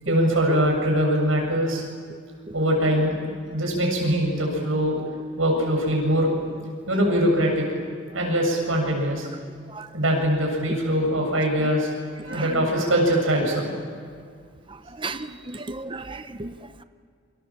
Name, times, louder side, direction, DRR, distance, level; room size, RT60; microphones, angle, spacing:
voice 1, 0.1-1.8 2.5-5.0 5.4-6.6 6.9-7.7 8.1-9.3 9.9-11.9 12.2-13.7, equal, 75° right, 1 dB, 7.5 m, -22 dB
voice 2, 15.0-16.5, right 3 dB, 25° right, 10 dB, 0.8 m, -34 dB
28.5 x 26.0 x 7.4 m, 2.1 s
head